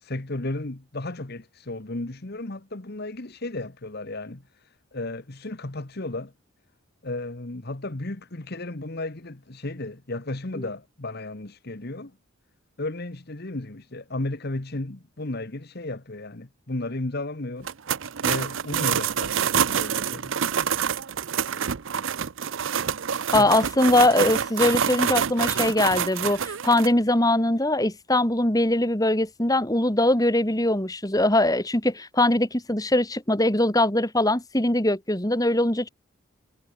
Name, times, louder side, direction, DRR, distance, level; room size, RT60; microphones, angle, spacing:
voice 1, 0.0-4.4 4.9-6.3 7.0-12.1 12.8-17.7 18.2-20.4 23.4-23.5, left 2 dB, 45° left, 1.3 m, -34 dB
sound 1, 17.6-26.9, right 8 dB, 60° right, 0.6 m, -26 dB
voice 2, 23.3-35.9, left 1 dB, 15° left, 2.2 m, -22 dB
head